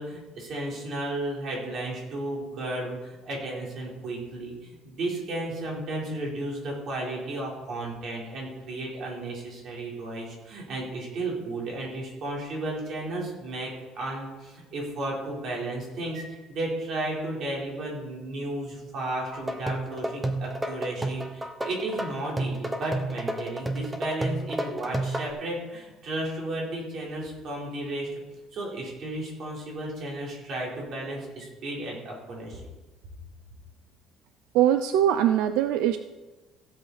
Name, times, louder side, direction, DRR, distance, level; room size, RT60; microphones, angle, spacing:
voice 1, 0.0-13.7 14.0-28.2 28.5-32.6, right 2 dB, 45° right, -3 dB, 4.0 m, -33 dB
sound 1, 19.3-25.3, right 1 dB, 10° right, 1.0 m, -31 dB
voice 2, 34.5-36.0, right 11 dB, 85° right, 9 dB, 0.5 m, -22 dB
16.0 x 7.7 x 4.2 m, 1.2 s
cardioid pair, 165°, 0 cm